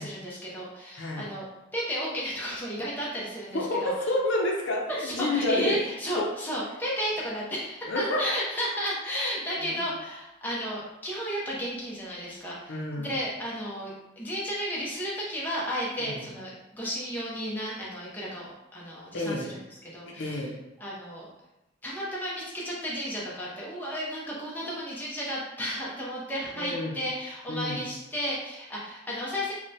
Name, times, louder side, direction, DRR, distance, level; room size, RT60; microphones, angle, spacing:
voice 1, 0.0-1.4 1.7-3.9 5.0-18.5 18.7-20.5 20.8-21.3 21.8-29.5, equal, 10° left, -6 dB, 0.5 m, -33 dB
voice 2, 3.5-5.8 6.2-6.3 7.9-8.2 9.6-9.7 12.7-13.1 16.0-16.3 19.1-19.5 20.1-20.5 26.6-27.0 27.5-27.8, left 2 dB, 70° left, -1 dB, 0.5 m, -29 dB
3.2 x 2.1 x 2.6 m, 0.94 s
head